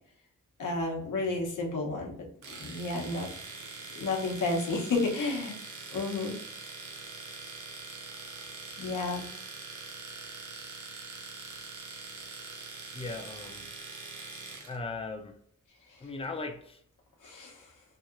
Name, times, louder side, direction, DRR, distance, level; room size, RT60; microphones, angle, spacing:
voice 1, 0.6-2.2 2.5-3.3 3.9-5.6 5.9-6.4 8.8-9.2 17.2-17.6, left 3 dB, 80° left, 0 dB, 0.9 m, -31 dB
Domestic sounds home sounds, 2.4-14.8, right 3 dB, 80° right, 0.7 m, -43 dB
voice 2, 12.9-13.7 14.6-15.4 16.0-16.8, left 3 dB, 20° left, 5 dB, 0.5 m, -38 dB
3.0 x 2.8 x 2.4 m, 0.64 s
cardioid pair, 75°, 30 cm